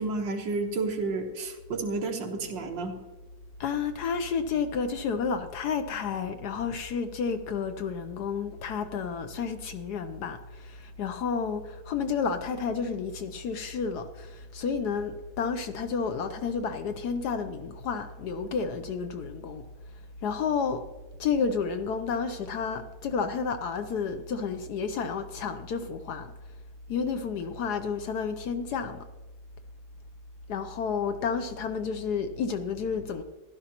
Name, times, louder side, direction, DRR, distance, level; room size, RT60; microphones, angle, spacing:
voice 1, 0.0-3.0, right 3 dB, 75° right, 1.9 m, -31 dB
voice 2, 3.6-19.6 20.2-20.8 21.2-26.3 26.9-29.0 30.5-33.2, left 5 dB, 70° left, 1.1 m, -31 dB
15.5 x 12.0 x 2.9 m
omnidirectional pair, 2.1 m